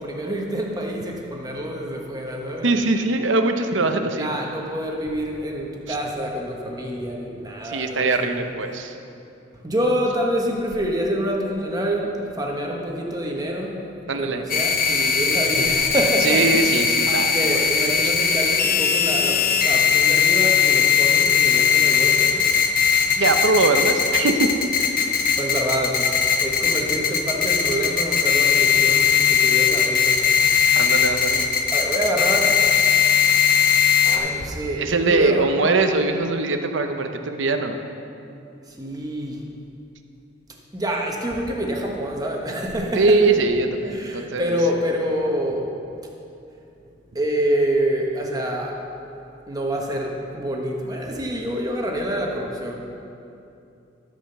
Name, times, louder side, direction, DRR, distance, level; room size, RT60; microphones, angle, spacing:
voice 1, 0.0-2.7 4.0-8.4 9.6-16.8 17.0-22.5 25.4-26.2 26.4-30.2 31.7-32.6 34.0-35.9 38.7-39.4 40.7-43.2 43.9-45.7 47.1-48.8 49.5-52.7, equal, 20° right, 0 dB, 1.1 m, -27 dB
voice 2, 2.6-4.3 5.9-6.0 7.6-8.9 14.1-14.4 16.2-17.3 18.0-18.1 23.2-24.5 30.7-31.5 34.7-37.7 42.9-44.6, right 3 dB, 80° right, 6 dB, 0.8 m, -21 dB
sound 1, 14.5-34.2, left 7 dB, 50° left, 0.8 m, -19 dB
13.5 x 5.1 x 6.5 m, 2.7 s
head